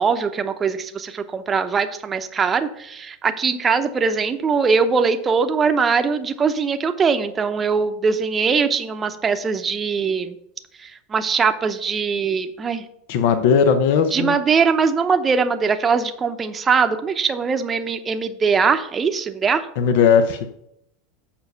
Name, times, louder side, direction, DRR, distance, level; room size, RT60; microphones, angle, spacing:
voice 1, 0.0-10.4 10.8-12.8 14.1-19.6, right 5 dB, 20° right, 9 dB, 0.8 m, -21 dB
voice 2, 13.1-14.4 19.8-20.4, left 6 dB, 65° left, 9 dB, 0.8 m, -17 dB
7.1 x 5.3 x 6.7 m, 0.77 s
supercardioid pair, 125°, 0 cm